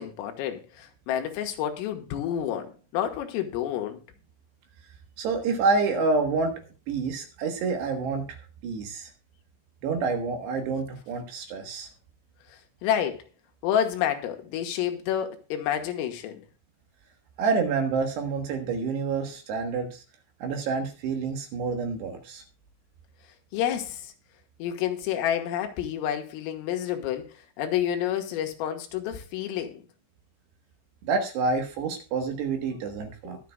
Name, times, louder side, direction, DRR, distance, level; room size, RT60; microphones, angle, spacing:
voice 1, 0.0-4.0 12.5-13.3 13.6-16.5 23.5-24.1 24.6-29.8 33.3-33.4, left 10 dB, 85° left, 3.9 m, -29 dB
voice 2, 5.2-6.5 6.9-8.4 8.6-9.1 9.8-11.9 17.4-20.0 20.4-22.4 31.0-33.4, right 4 dB, 65° right, 3.1 m, -28 dB
22.0 x 7.5 x 2.3 m
omnidirectional pair, 6.0 m